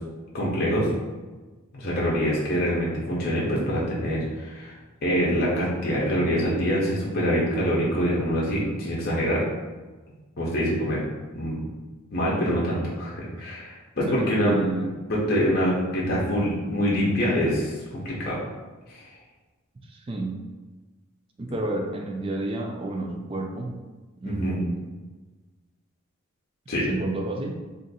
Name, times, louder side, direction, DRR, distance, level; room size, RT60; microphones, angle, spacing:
voice 1, 0.3-0.9 1.7-4.7 5.0-9.4 10.4-11.0 11.3-11.6 12.1-14.5 15.1-18.4 18.9-19.0 24.3-24.5 26.7-26.9, equal, 50° left, -5 dB, 0.7 m, -25 dB
voice 2, 14.1-14.9 19.9-20.4 21.4-23.7 24.2-24.9 26.9-27.6, right 2 dB, 25° right, 1 dB, 0.4 m, -30 dB
2.6 x 2.5 x 4.0 m, 1.3 s
head